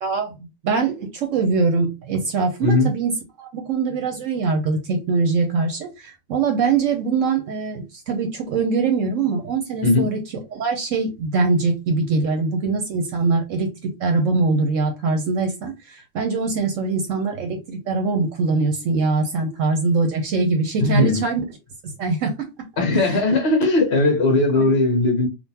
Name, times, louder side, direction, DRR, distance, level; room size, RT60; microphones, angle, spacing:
voice 1, 0.0-3.1 3.4-10.2 10.5-21.4 21.8-22.5 22.9-23.2 24.5-24.7, right 4 dB, 70° right, 1.0 m, -23 dB
voice 2, 20.8-21.2 22.8-25.3, left 2 dB, 50° left, 1.2 m, -18 dB
3.6 x 2.5 x 2.8 m
omnidirectional pair, 1.5 m